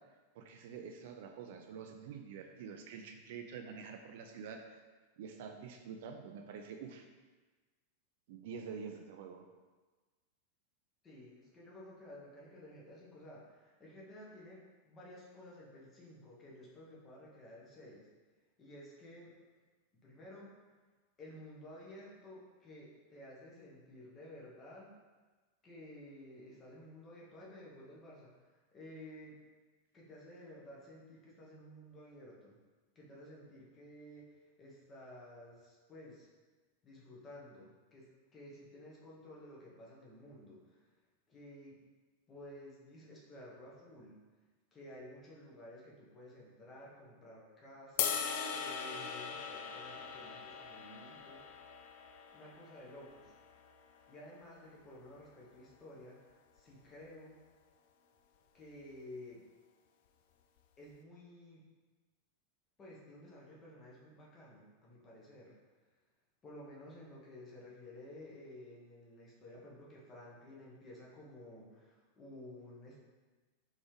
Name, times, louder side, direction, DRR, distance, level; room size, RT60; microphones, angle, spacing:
voice 1, 0.3-4.8 5.2-7.1 8.3-9.4, right 6 dB, 50° right, 5 dB, 0.3 m, -47 dB
voice 2, 11.0-18.1 18.6-19.3 20.0-20.6 21.2-24.9 25.6-29.4 29.9-32.6 32.9-36.3 36.8-40.9 41.3-41.8 42.3-44.2 44.7-51.6 52.3-53.3 54.1-56.2 56.5-57.4 58.5-59.4 60.8-61.6 62.8-65.6 66.4-73.0, left 1 dB, 25° left, -5 dB, 1.2 m, -53 dB
sound 1, 48.0-54.2, left 7 dB, 50° left, 0.3 m, -40 dB
4.0 x 3.5 x 3.1 m, 1.3 s
figure-of-eight pair, 90°, 0 cm